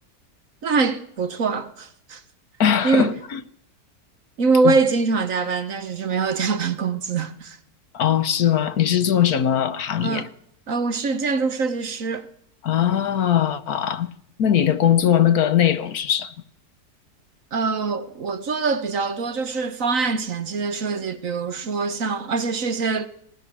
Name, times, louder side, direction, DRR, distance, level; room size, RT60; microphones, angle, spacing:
voice 1, 0.6-2.2 2.8-3.1 4.4-7.6 10.0-10.3 10.7-12.3 17.5-23.1, right 4 dB, 55° right, 1.5 m, -23 dB
voice 2, 2.6-3.4 4.6-4.8 7.9-10.3 12.6-14.1 14.4-16.3, left 9 dB, 65° left, 1.5 m, -20 dB
26.0 x 19.0 x 6.1 m
omnidirectional pair, 1.8 m